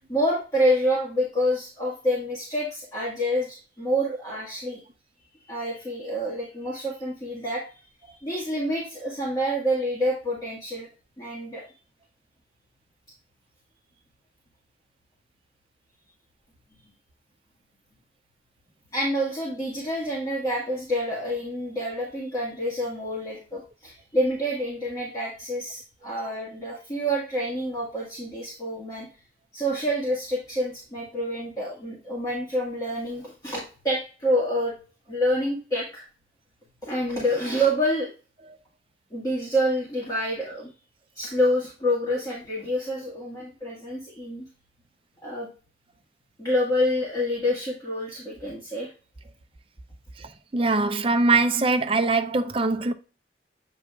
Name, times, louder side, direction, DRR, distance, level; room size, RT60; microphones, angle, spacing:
voice 1, 0.1-4.8 5.5-7.6 8.0-10.9 11.2-11.6 18.9-29.1 29.5-34.7 35.1-36.1 36.8-38.1 39.1-40.7 41.1-44.4 45.2-45.5 46.4-48.9, equal, 20° left, 1.7 m, -27 dB
voice 2, 50.2-52.9, right 3 dB, 30° right, 0.5 m, -22 dB
8.2 x 5.4 x 2.3 m
head